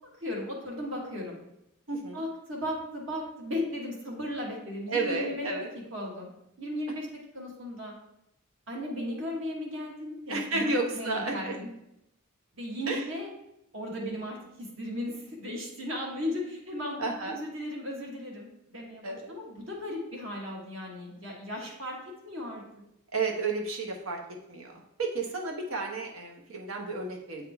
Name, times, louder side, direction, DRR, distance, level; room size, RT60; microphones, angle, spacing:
voice 1, 0.2-1.4 2.1-5.5 5.9-6.3 6.6-7.1 7.3-7.9 8.7-11.7 12.5-13.3 13.7-22.0 22.2-22.6, left 1 dB, 70° right, -2 dB, 1.6 m, -36 dB
voice 2, 1.9-2.2 4.9-5.7 10.3-11.6 12.9-13.0 14.0-14.2 17.0-17.4 19.0-19.4 23.1-24.2 24.5-27.5, right 3 dB, 90° right, 1 dB, 1.1 m, -32 dB
8.3 x 3.7 x 3.5 m, 0.81 s
head